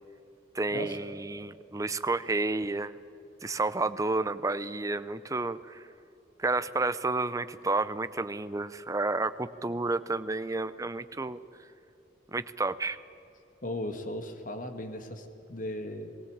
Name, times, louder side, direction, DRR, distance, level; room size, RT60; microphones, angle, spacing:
voice 1, 0.5-2.9 3.4-5.8 6.4-11.4 12.3-13.0, right 3 dB, 20° right, 14 dB, 0.6 m, -30 dB
voice 2, 13.6-16.1, left 1 dB, 45° left, 6 dB, 1.7 m, -37 dB
20.0 x 16.0 x 8.7 m, 2.8 s
head